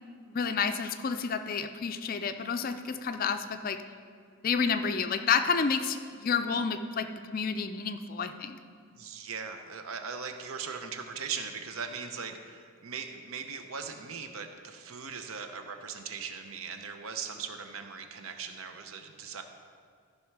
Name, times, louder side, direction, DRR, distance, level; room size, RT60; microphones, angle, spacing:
voice 1, 0.3-3.8 4.4-8.6, left 5 dB, 40° left, 9 dB, 0.4 m, -30 dB
voice 2, 9.0-19.4, right 6 dB, 75° right, 6 dB, 0.7 m, -39 dB
14.0 x 5.6 x 4.7 m, 2.2 s
head